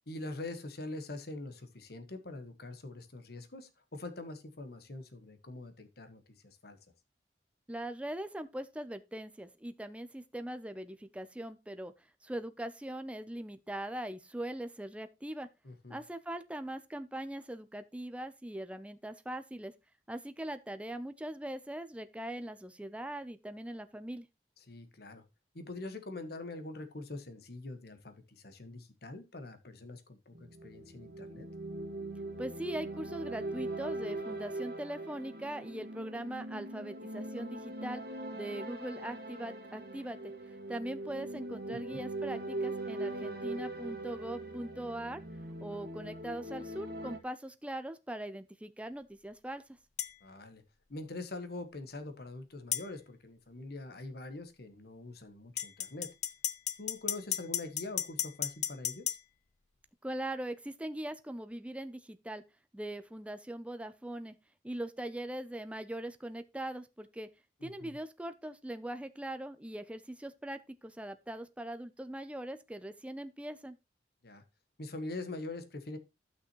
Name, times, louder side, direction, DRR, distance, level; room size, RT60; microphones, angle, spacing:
voice 1, 0.1-6.8 15.6-16.0 24.7-25.2 25.5-31.5 41.9-42.0 50.2-50.6 50.9-56.1 56.8-59.2 67.6-68.0 74.2-74.4 74.8-76.0, left 2 dB, 60° left, 1.3 m, -44 dB
voice 2, 7.7-11.9 12.2-15.5 15.9-19.7 20.1-24.3 32.4-38.0 38.3-40.3 40.7-45.2 45.6-49.6 60.0-62.4 62.7-64.3 64.6-67.3 67.6-73.8, right 1 dB, 5° right, 0.5 m, -41 dB
sound 1, 30.3-47.2, right 2 dB, 60° right, 2.0 m, -41 dB
sound 2, 50.0-50.1 52.7-52.9 55.6-59.2, left 11 dB, 40° left, 0.6 m, -34 dB
12.5 x 6.0 x 3.0 m
head